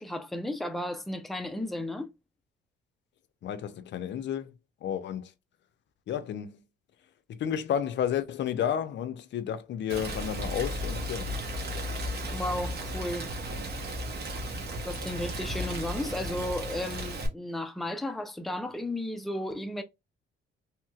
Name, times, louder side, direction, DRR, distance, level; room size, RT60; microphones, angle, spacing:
voice 1, 0.0-2.1 12.3-13.3 14.8-19.8, left 1 dB, ahead, 0.5 m, -34 dB
voice 2, 3.4-4.5 4.8-5.3 6.1-6.6 7.3-11.3, left 9 dB, 65° left, 0.5 m, -31 dB
Rain, 9.9-17.3, equal, 55° right, 1.0 m, -34 dB
3.1 x 2.9 x 2.3 m
cardioid pair, 90°, 20 cm